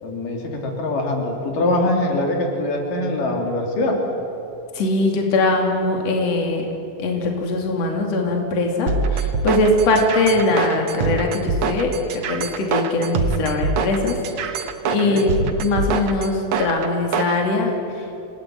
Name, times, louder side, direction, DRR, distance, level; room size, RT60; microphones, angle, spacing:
voice 1, 0.0-4.0 15.0-15.2, left 1 dB, 80° left, 1 dB, 4.6 m, -23 dB
voice 2, 4.7-6.7 7.0-15.3 15.6-18.0, left 2 dB, 55° left, 2 dB, 3.7 m, -21 dB
sound 1, 8.9-17.4, right 4 dB, 55° right, 1.8 m, -24 dB
28.0 x 19.5 x 9.1 m, 2.9 s
omnidirectional pair, 3.7 m